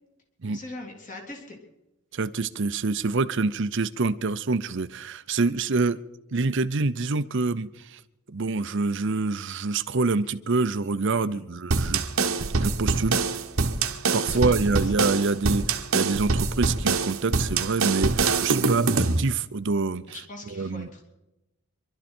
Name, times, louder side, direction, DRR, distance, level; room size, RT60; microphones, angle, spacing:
voice 1, 0.5-1.6 11.3-11.5 14.0-14.9 18.6-18.8 20.1-21.0, left 2 dB, 35° left, 2 dB, 3.0 m, -42 dB
voice 2, 2.1-6.0 6.3-8.0 8.3-12.0 12.6-13.2 14.1-20.0 20.6-20.9, right 3 dB, 55° right, 14 dB, 0.7 m, -26 dB
sound 1, 11.7-19.2, right 4 dB, 70° right, 1.1 m, -24 dB
25.5 x 12.5 x 4.4 m, 0.96 s
head